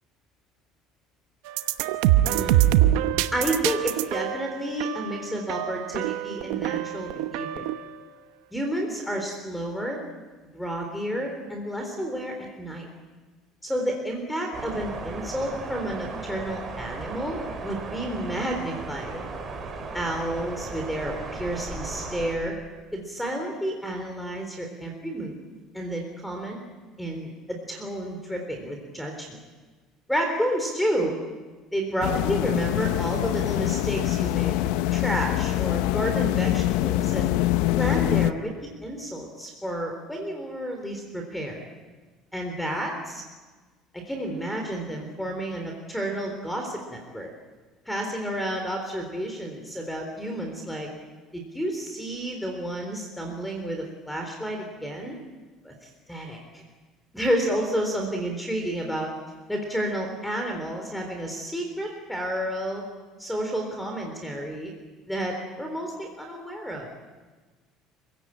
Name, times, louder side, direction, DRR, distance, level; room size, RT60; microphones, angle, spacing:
sound 1, 1.5-7.9, right 13 dB, 85° right, 1.0 m, -24 dB
voice 1, 2.2-2.7 3.3-7.7 8.5-10.0 10.5-12.9 13.6-19.2 19.9-22.6 22.9-25.4 25.7-26.6 27.0-29.4 30.1-31.1 31.7-37.3 37.8-41.7 42.3-43.2 43.9-47.3 47.9-50.9 51.3-55.2 55.6-56.6 57.1-59.1 59.5-62.8 63.2-64.7 65.1-66.9, equal, 5° left, 3 dB, 3.7 m, -31 dB
sound 2, 14.5-22.4, right 3 dB, 25° right, 4.7 m, -36 dB
sound 3, 32.0-38.3, left 15 dB, 85° left, 0.7 m, -24 dB
26.5 x 16.5 x 8.8 m, 1.3 s
cardioid pair, 130°, 0 cm